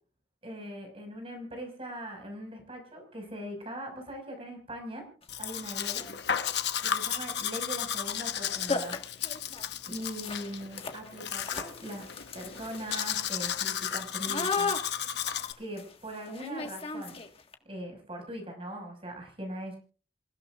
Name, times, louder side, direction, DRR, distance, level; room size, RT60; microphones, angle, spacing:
voice 1, 0.4-5.0 5.4-6.1 6.8-9.0 9.9-12.1 12.3-14.8 15.6-17.2 17.6-19.8, right 1 dB, 30° right, 3 dB, 5.8 m, -40 dB
sound 1, 5.2-5.3 5.9-6.2 7.9-8.1 8.4-8.5 8.7-17.5, left 4 dB, 30° left, 1.7 m, -37 dB
Domestic sounds home sounds, 5.3-15.5, left 9 dB, 60° left, 1.1 m, -34 dB
28.5 x 16.0 x 2.5 m, 0.39 s
head